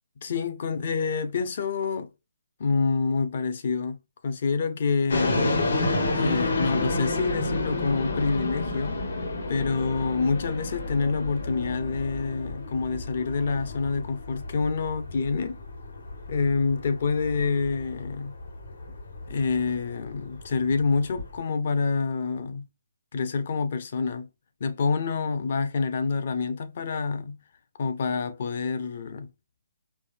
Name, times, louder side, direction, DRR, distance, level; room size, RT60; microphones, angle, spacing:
voice 1, 0.2-2.1 2.6-4.0 4.2-5.6 6.1-8.9 9.5-15.6 16.3-18.3 19.3-22.6 23.1-24.3 24.6-27.4 27.8-29.3, left 4 dB, 40° left, 0.6 m, -27 dB
sound 1, 5.1-21.4, left 2 dB, 65° left, 1.6 m, -31 dB
4.6 x 2.8 x 2.6 m
hypercardioid pair, 175°, 0 cm